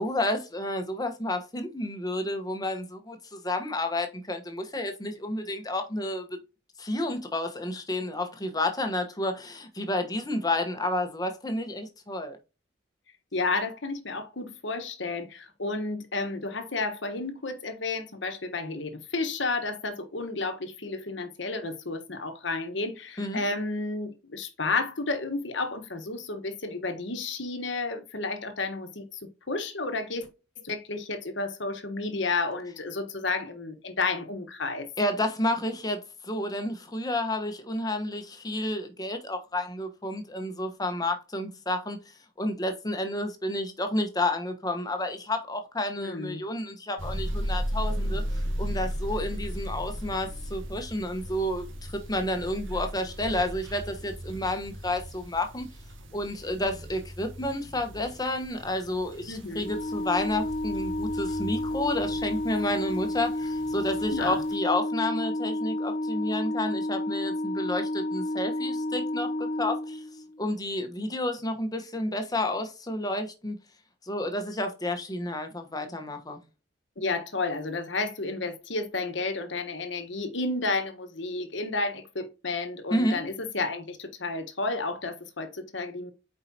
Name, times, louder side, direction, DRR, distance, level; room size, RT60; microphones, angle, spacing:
voice 1, 0.0-6.3 6.8-12.4 23.2-23.4 35.0-48.2 48.6-55.7 56.1-70.0 70.4-73.6 74.0-76.4 82.9-83.2, left 1 dB, 20° left, 1.2 m, -30 dB
voice 2, 13.3-29.2 29.5-30.3 30.6-34.9 46.0-46.4 59.3-59.7 64.1-64.4 77.0-86.1, left 3 dB, 65° left, 1.3 m, -31 dB
sound 1, 47.0-64.6, equal, 75° right, 1.7 m, -36 dB
Organ, 59.6-70.5, left 1 dB, 40° left, 0.3 m, -31 dB
8.4 x 4.8 x 2.9 m
head